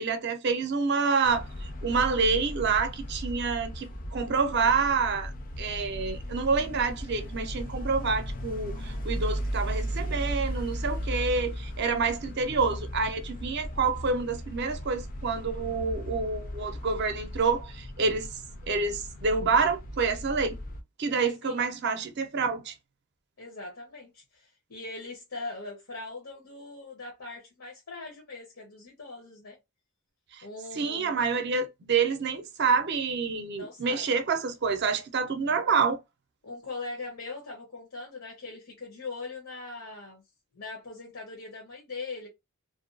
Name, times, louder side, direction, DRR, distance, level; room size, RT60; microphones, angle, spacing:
voice 1, 0.0-18.3 18.7-20.6 21.0-22.7 30.3-30.4 30.8-36.0, right 5 dB, 50° right, 0.5 m, -28 dB
sound 1, 1.2-20.8, equal, 40° left, 0.4 m, -36 dB
voice 2, 23.4-29.6 30.4-31.2 33.6-34.1 36.4-40.2 40.5-42.3, left 3 dB, 75° left, 0.8 m, -41 dB
2.5 x 2.2 x 2.5 m
head